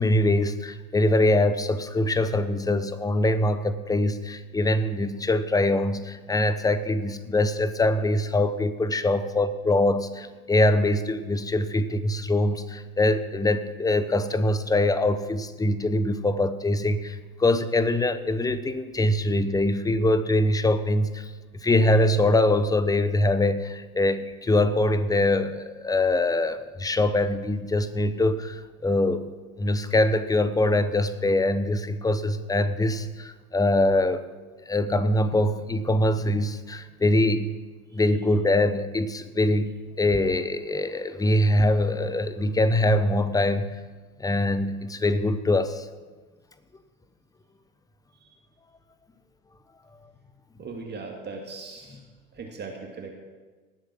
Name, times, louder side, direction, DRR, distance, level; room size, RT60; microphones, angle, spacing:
voice 1, 0.0-21.3 21.6-29.3 29.6-34.2 34.7-37.5 37.9-39.7 40.0-43.7 44.2-45.9, left 1 dB, 10° left, 13 dB, 0.8 m, -23 dB
voice 2, 50.6-52.0 52.3-53.1, right 4 dB, 25° right, 1 dB, 2.1 m, -39 dB
18.5 x 8.0 x 6.1 m, 1.3 s
hypercardioid pair, 85°, 43 cm